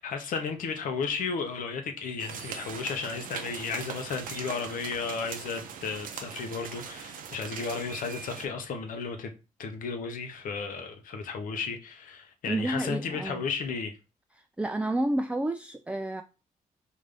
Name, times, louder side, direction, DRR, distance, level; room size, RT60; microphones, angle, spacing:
voice 1, 0.0-9.3 9.6-13.9, left 5 dB, 75° left, 0.7 m, -34 dB
sound 1, 2.2-8.5, right 7 dB, 75° right, 0.5 m, -41 dB
voice 2, 12.5-13.4 14.6-16.2, right 1 dB, 10° right, 0.3 m, -30 dB
3.8 x 2.6 x 3.4 m
supercardioid pair, 55°, 14 cm